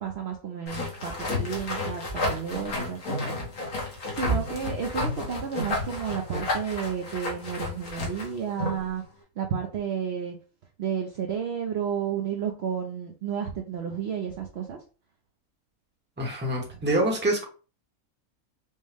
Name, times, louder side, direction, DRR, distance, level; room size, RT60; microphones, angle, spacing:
voice 1, 0.0-3.3 3.6-9.0 9.4-10.4 10.8-14.8 16.7-16.8, right 7 dB, 60° right, 2 dB, 0.7 m, -32 dB
sound 1, 0.7-8.9, left 1 dB, 75° left, 1.6 m, -31 dB
voice 2, 16.2-17.4, right 1 dB, 10° right, 0 dB, 0.8 m, -26 dB
5.4 x 2.1 x 3.3 m, 0.35 s
omnidirectional pair, 1.5 m